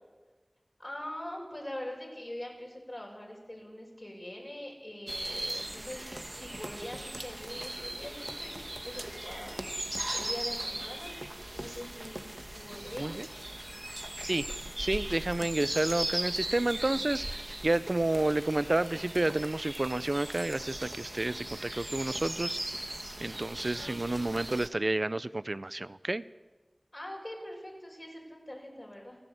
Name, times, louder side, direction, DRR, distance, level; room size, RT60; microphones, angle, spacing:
voice 1, 0.8-11.1 11.5-12.3 12.6-13.2 23.8-24.3 26.9-29.2, left 1 dB, 45° left, -2 dB, 7.1 m, -43 dB
sound 1, 5.1-24.7, right 1 dB, 40° right, 1.3 m, -38 dB
voice 2, 14.8-22.6 23.2-26.2, right 2 dB, 65° right, 16 dB, 0.7 m, -30 dB
29.5 x 11.5 x 8.1 m, 1.3 s
wide cardioid pair, 45°, 0 cm